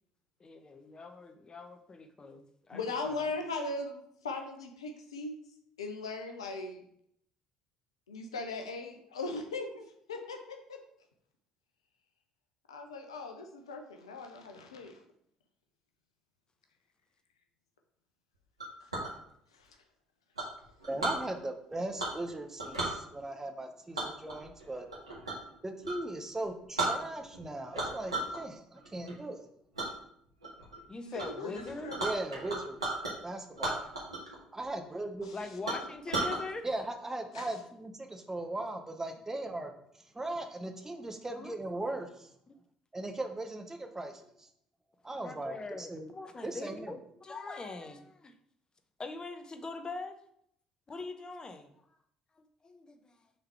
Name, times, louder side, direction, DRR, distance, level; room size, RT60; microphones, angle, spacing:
voice 1, 0.4-3.3 30.9-31.9 35.3-36.7 41.3-41.5 42.5-42.6 45.2-48.3 49.0-50.2 50.9-51.8 52.4-53.1, left 3 dB, 25° left, 7 dB, 0.9 m, -43 dB
voice 2, 2.7-5.3 5.8-6.8 8.1-9.8 10.1-10.8 12.7-14.9 18.8-18.9 19.5-19.8 31.0-32.0 35.2-35.4 37.3-37.5, left 3 dB, 80° left, 4 dB, 0.8 m, -39 dB
Chink clink, 18.6-19.1 20.4-21.2 22.0-22.3 22.6-23.0 23.9-25.5 25.8-26.0 26.4-26.5 26.8-27.4 27.7-28.4 28.8-29.1 29.8-29.9 30.4-30.8 31.2-31.3 31.5-33.1 33.5-34.4 34.6-34.7 35.2-35.3 35.7-36.4, right 2 dB, 85° right, 1.3 m, -34 dB
voice 3, 20.9-24.9 25.6-29.5 32.0-32.8 33.2-33.9 34.5-35.3 36.6-39.7 40.1-42.3 42.9-44.5 45.0-46.1 46.4-47.0, right 2 dB, 15° right, 5 dB, 1.0 m, -38 dB
6.6 x 4.0 x 4.6 m, 0.70 s
figure-of-eight pair, 50°, 3 cm